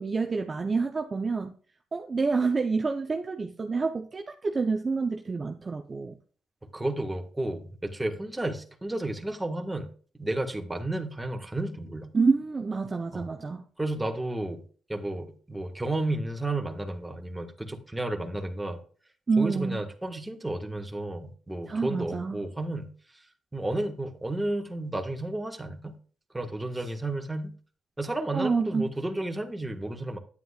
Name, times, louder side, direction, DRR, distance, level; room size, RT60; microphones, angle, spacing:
voice 1, 0.0-1.6 1.9-6.2 12.1-13.6 19.3-19.8 21.7-22.4 28.3-28.9, right 4 dB, 30° right, 0.8 m, -28 dB
voice 2, 6.7-9.9 10.2-12.1 13.1-13.3 13.8-14.6 14.9-18.8 19.4-22.9 23.5-25.9 26.3-27.5 28.0-30.2, right 2 dB, 10° right, 1.6 m, -32 dB
9.9 x 9.0 x 2.5 m
cardioid pair, 90°, 0 cm